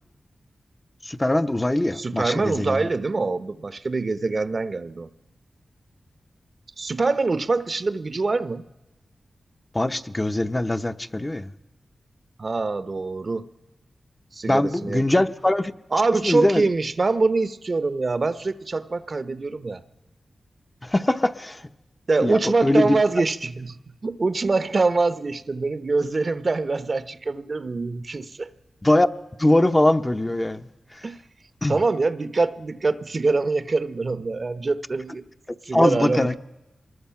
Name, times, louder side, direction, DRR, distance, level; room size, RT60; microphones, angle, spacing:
voice 1, 1.0-2.9 9.7-11.5 14.5-15.7 16.2-16.6 20.8-21.6 22.2-23.0 28.8-29.1 29.4-30.6 31.6-31.8 35.7-36.3, left 1 dB, 20° left, 0.9 m, -21 dB
voice 2, 1.9-5.1 6.8-8.7 12.4-13.5 14.3-15.2 15.9-19.8 22.1-28.5 31.0-31.2 31.7-35.2 35.6-36.3, right 3 dB, 50° right, 0.9 m, -24 dB
24.0 x 20.5 x 5.9 m
cardioid pair, 50°, 0 cm